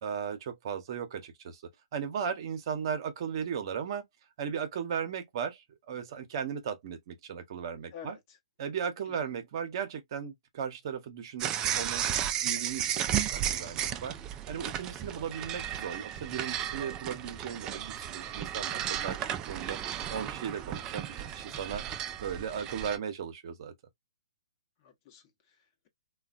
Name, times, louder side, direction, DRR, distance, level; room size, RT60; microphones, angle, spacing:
voice 1, 0.0-1.6 1.9-4.0 4.4-8.2 8.6-12.1 12.4-14.1 14.5-19.8 20.1-21.8 22.2-23.7, right 7 dB, 50° right, 0.8 m, -36 dB
voice 2, 7.9-8.4 9.1-9.2 19.6-20.1 24.8-25.9, left 8 dB, 35° left, 0.9 m, -51 dB
sound 1, 11.4-23.0, right 10 dB, 20° right, 0.3 m, -34 dB
3.1 x 2.3 x 2.4 m
hypercardioid pair, 135°, 3 cm